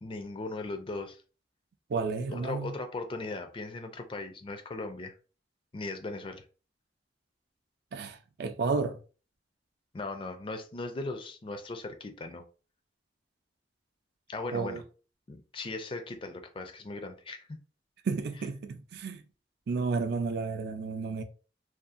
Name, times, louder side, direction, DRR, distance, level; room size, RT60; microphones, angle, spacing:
voice 1, 0.0-1.2 2.3-5.1 5.7-6.4 9.9-12.4 14.3-14.8 15.3-17.6, left 3 dB, 30° left, 0.4 m, -38 dB
voice 2, 1.9-2.7 7.9-9.0 14.5-14.8 18.0-19.2 19.7-21.2, right 4 dB, 60° right, 0.4 m, -32 dB
2.7 x 2.3 x 2.4 m
head